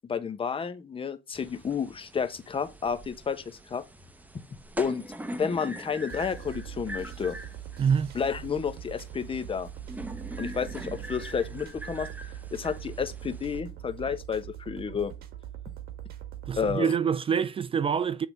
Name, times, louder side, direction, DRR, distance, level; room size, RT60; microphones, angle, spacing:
voice 1, 0.1-3.8 4.8-5.0 5.4-7.4 8.1-9.7 10.4-12.1 12.5-15.1 16.6-16.9, left 6 dB, 30° left, 1.2 m, -31 dB
sound 1, 1.3-13.6, right 1 dB, 10° right, 1.0 m, -43 dB
sound 2, 6.1-16.8, right 11 dB, 65° right, 1.6 m, -42 dB
voice 2, 7.8-8.1 16.5-18.3, right 7 dB, 35° right, 0.5 m, -26 dB
9.2 x 3.8 x 4.9 m
cardioid pair, 110°, 17 cm